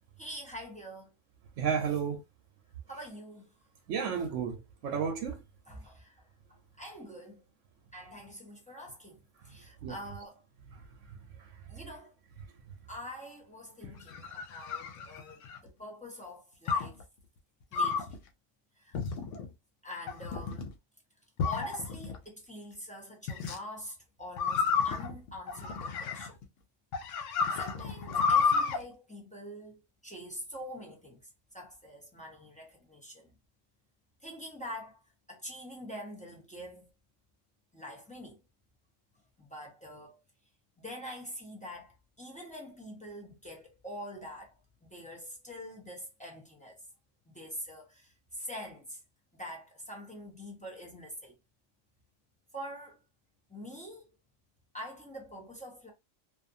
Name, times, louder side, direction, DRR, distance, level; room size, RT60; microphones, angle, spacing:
voice 1, 0.2-1.1 2.9-3.5 5.7-6.2 6.8-7.4 7.9-10.4 11.7-12.1 12.9-17.0 17.7-18.2 18.8-19.0 19.8-20.7 21.4-26.4 27.6-31.2 31.5-33.3 34.2-35.0 35.3-36.9 37.7-38.4 39.4-40.2 40.8-46.8 47.3-49.0 49.3-51.4 52.5-53.0 53.5-54.1 54.7-55.9, equal, 10° left, 0.6 m, -45 dB
voice 2, 1.6-2.2 3.9-5.4 9.8-9.9 14.2-14.3, right 7 dB, 75° right, 0.9 m, -32 dB
sound 1, 13.8-15.7 16.7-17.0 17.7-18.2 18.9-19.5 20.1-20.7 21.4-22.2 23.3-23.6 24.4-26.4 26.9-28.8, left 5 dB, 75° left, 1.0 m, -31 dB
2.5 x 2.4 x 2.5 m
omnidirectional pair, 1.3 m